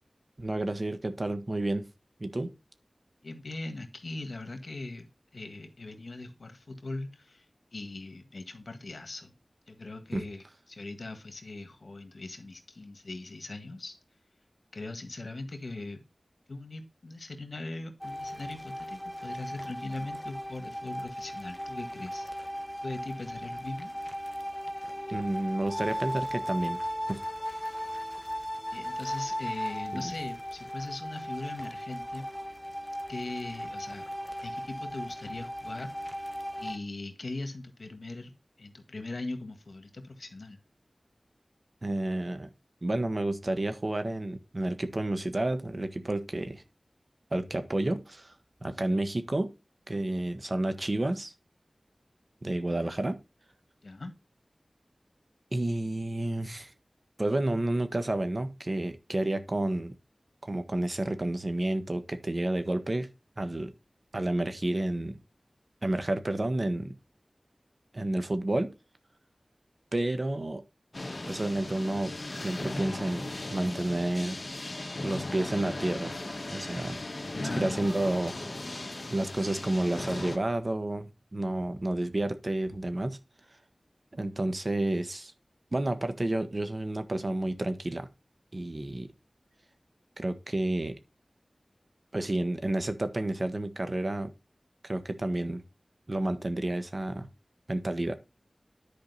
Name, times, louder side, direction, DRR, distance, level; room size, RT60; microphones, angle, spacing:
voice 1, 0.4-1.9 2.2-2.5 10.1-10.2 25.1-26.8 27.1-27.2 29.9-30.1 41.8-42.5 42.8-46.6 47.3-48.3 48.6-49.5 49.9-51.3 52.4-53.2 55.5-56.7 57.2-59.9 60.4-63.1 63.4-63.7 64.1-65.2 65.8-66.9 67.9-68.7 69.9-70.6 71.2-72.1 72.4-74.5 75.0-76.1 76.5-77.0 77.5-78.3 79.1-83.2 84.1-85.3 85.7-88.1 88.5-89.1 90.2-90.9 92.1-94.3 94.8-95.6 96.1-97.3 97.7-98.2, right 1 dB, 50° right, 1.4 m, -30 dB
voice 2, 3.2-7.4 7.7-9.3 9.7-14.0 14.7-16.0 16.5-22.3 22.8-23.9 28.7-32.2 33.1-34.0 34.4-36.2 36.6-38.3 38.6-40.6 53.8-54.1 77.3-77.8, left 2 dB, 75° left, 1.7 m, -40 dB
sound 1, 18.0-36.8, equal, 5° left, 1.2 m, -37 dB
sound 2, 70.9-80.4, left 2 dB, 50° left, 1.6 m, -37 dB
10.5 x 5.1 x 4.1 m
wide cardioid pair, 50°, 0 cm